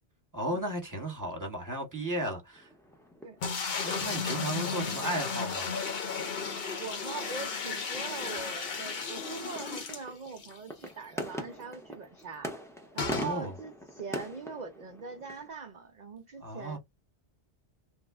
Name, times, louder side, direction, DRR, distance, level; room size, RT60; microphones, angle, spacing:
voice 1, 0.3-2.7 3.8-5.7 13.1-13.5 16.4-16.8, right 1 dB, 20° right, 0.9 m, -35 dB
sound 1, 2.6-15.5, equal, 5° left, 0.3 m, -44 dB
sound 2, 3.4-10.6 10.9-11.0 11.2-11.3 13.0-13.3, left 5 dB, 60° left, 0.9 m, -34 dB
voice 2, 6.8-12.5 12.9-16.8, right 4 dB, 55° right, 0.5 m, -42 dB
3.2 x 2.1 x 3.4 m
omnidirectional pair, 1.2 m